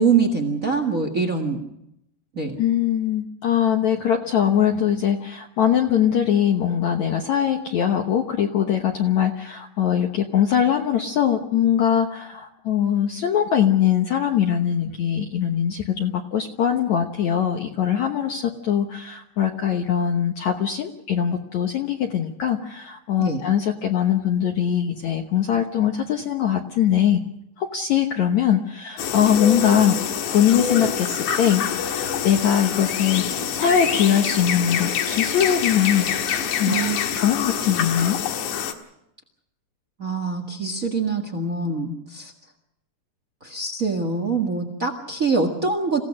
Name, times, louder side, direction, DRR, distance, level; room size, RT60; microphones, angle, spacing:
voice 1, 0.0-1.7 2.3-2.6 23.2-23.4 36.7-37.0 40.0-42.3 43.4-46.0, right 4 dB, 70° right, 6 dB, 0.7 m, -24 dB
voice 2, 2.6-27.2 27.6-30.0 30.3-31.6 31.9-33.2 33.6-38.2, left 9 dB, 70° left, 3 dB, 1.8 m, -22 dB
sound 1, 29.0-38.7, left 8 dB, 85° left, 3.8 m, -26 dB
28.0 x 16.5 x 6.4 m, 0.80 s
omnidirectional pair, 4.8 m